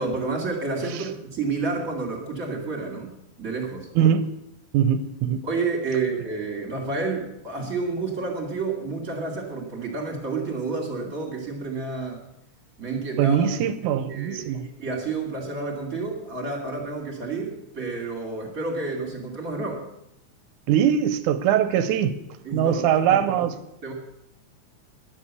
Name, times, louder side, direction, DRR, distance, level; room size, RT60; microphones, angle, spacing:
voice 1, 0.0-3.1 3.4-3.9 5.4-12.2 12.8-13.5 14.1-19.8 22.4-23.0 23.8-23.9, right 3 dB, 30° right, 0 dB, 2.6 m, -30 dB
voice 2, 4.0-4.3 4.7-5.4 13.2-14.7 20.7-22.1 22.5-23.6, right 9 dB, 85° right, 11 dB, 2.1 m, -22 dB
11.5 x 7.4 x 8.3 m, 0.82 s
omnidirectional pair, 3.5 m